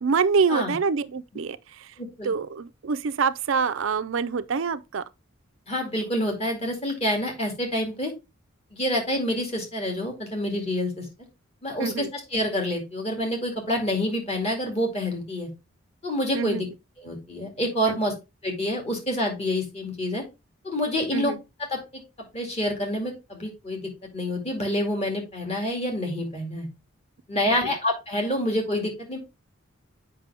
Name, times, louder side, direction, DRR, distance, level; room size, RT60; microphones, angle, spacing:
voice 1, 0.0-1.9 2.2-5.0 11.8-12.1 16.3-16.6 17.9-18.0 21.1-21.4 27.3-27.7, right 5 dB, 70° right, 0.5 m, -26 dB
voice 2, 2.0-2.3 5.7-8.1 8.7-11.1 11.6-15.5 16.0-16.7 17.0-18.1 18.4-20.2 20.6-21.3 21.6-22.0 22.3-23.8 24.1-26.7 27.3-29.2, left 1 dB, 30° left, 2.3 m, -27 dB
7.4 x 5.5 x 3.4 m
head